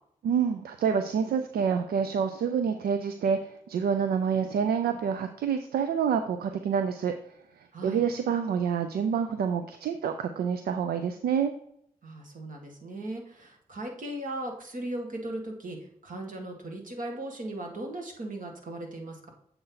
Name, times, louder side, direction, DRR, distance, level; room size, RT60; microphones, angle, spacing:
voice 1, 0.2-7.1 7.8-11.5, right 7 dB, 80° right, 8 dB, 0.5 m, -27 dB
voice 2, 7.7-8.0 12.0-19.3, right 1 dB, 60° right, 2 dB, 1.8 m, -37 dB
7.8 x 4.4 x 3.9 m, 0.73 s
supercardioid pair, 45°, 16 cm